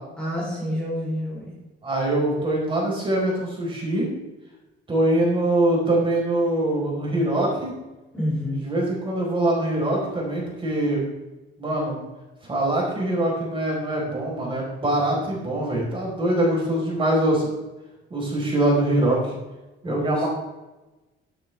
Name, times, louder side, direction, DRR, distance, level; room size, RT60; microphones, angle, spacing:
voice 1, 0.2-1.5 8.1-8.6 19.8-20.2, equal, 5° left, -5 dB, 3.4 m, -28 dB
voice 2, 1.8-4.1 4.9-7.7 8.5-11.0 11.6-12.0 12.4-17.6 18.1-19.4 19.8-20.3, right 1 dB, 25° right, -3 dB, 4.6 m, -23 dB
15.0 x 8.9 x 3.5 m, 1.1 s
cardioid pair, 140°, 20 cm